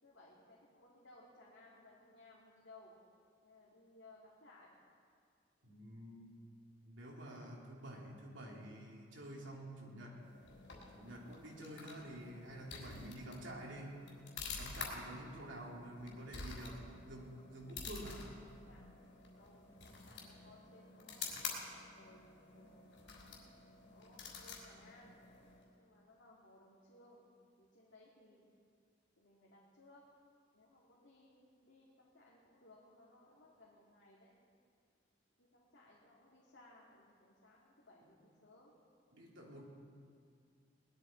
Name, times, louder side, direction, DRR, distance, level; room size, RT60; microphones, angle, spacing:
voice 1, 0.0-3.0 3.4-4.7 18.4-18.8 19.4-21.3 21.9-23.0 23.9-25.2 25.8-27.3 27.6-28.4 29.2-30.0 30.5-34.3 35.4-38.7, left 2 dB, 75° left, -6 dB, 2.3 m, -62 dB
voice 2, 5.6-6.4 6.8-10.2 10.9-14.0 14.5-18.3 38.0-38.1 39.1-39.7, right 1 dB, 80° right, -2 dB, 3.0 m, -49 dB
sound 1, 10.2-25.7, left 4 dB, 90° left, 3.6 m, -49 dB
19.5 x 12.5 x 4.4 m, 2.2 s
head